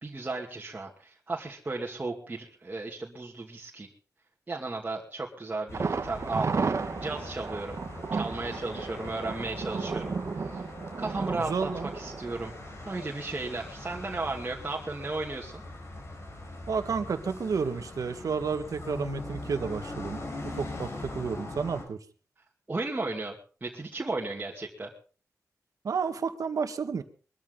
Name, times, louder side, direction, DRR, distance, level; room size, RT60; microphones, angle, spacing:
voice 1, 0.0-3.9 4.5-6.6 7.0-7.8 8.1-10.7 11.0-12.5 12.9-15.6 22.7-24.9, right 3 dB, 30° right, -2 dB, 2.5 m, -35 dB
sound 1, 5.7-21.8, left 2 dB, 50° left, 4.9 m, -41 dB
Thunder, 5.7-13.5 13.8-13.9 14.3-14.4, right 4 dB, 55° right, 1.3 m, -34 dB
voice 2, 11.4-11.9 16.7-22.0 25.8-27.0, right 5 dB, 75° right, 8 dB, 1.8 m, -31 dB
22.5 x 13.5 x 4.0 m, 0.39 s
wide cardioid pair, 110°, 6 cm